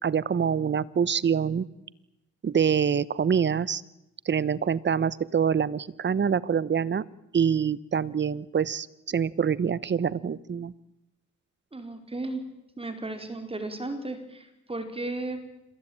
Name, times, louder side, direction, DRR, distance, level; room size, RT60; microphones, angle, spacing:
voice 1, 0.0-1.7 2.4-3.8 4.2-7.0 7.3-10.7, right 7 dB, 35° right, 19 dB, 1.1 m, -25 dB
voice 2, 11.7-12.4 12.8-15.4, right 2 dB, 20° right, 7 dB, 4.7 m, -34 dB
27.0 x 21.0 x 8.9 m, 0.90 s
cardioid pair, 90°, 30 cm